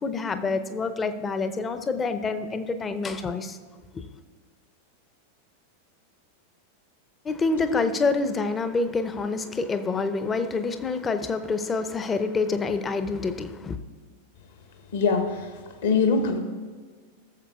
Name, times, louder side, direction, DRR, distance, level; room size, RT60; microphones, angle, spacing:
voice 1, 0.0-3.6 3.9-4.1 7.2-13.8, left 4 dB, 20° left, 10 dB, 0.6 m, -27 dB
voice 2, 14.9-15.5 15.8-16.4, left 4 dB, 60° left, 5 dB, 1.2 m, -23 dB
16.0 x 7.2 x 2.4 m, 1.5 s
figure-of-eight pair, 90°, 0 cm